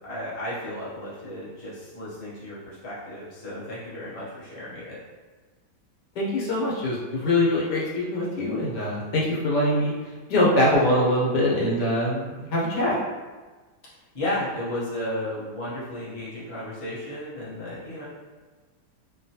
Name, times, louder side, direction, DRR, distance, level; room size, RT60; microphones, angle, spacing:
voice 1, 0.0-5.0 14.1-18.0, left 1 dB, 30° left, -9 dB, 0.6 m, -33 dB
voice 2, 6.1-9.9 10.3-13.0, left 1 dB, 80° left, -5 dB, 1.4 m, -23 dB
3.1 x 2.2 x 2.7 m, 1.3 s
omnidirectional pair, 1.8 m